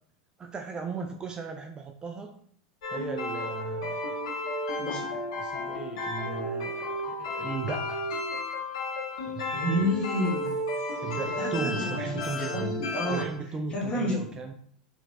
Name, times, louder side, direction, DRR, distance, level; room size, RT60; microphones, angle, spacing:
voice 1, 0.4-2.3 2.9-4.1 5.4-8.2 9.3-9.5 11.0-12.8 13.1-14.5, right 4 dB, 20° right, 5 dB, 0.3 m, -36 dB
sound 1, 2.8-13.2, left 1 dB, 60° left, 1.1 m, -33 dB
voice 2, 4.8-5.1 9.5-10.5 11.4-13.3 13.7-14.2, left 1 dB, 30° left, -3 dB, 1.3 m, -30 dB
3.8 x 3.2 x 2.3 m, 0.63 s
figure-of-eight pair, 85°, 4 cm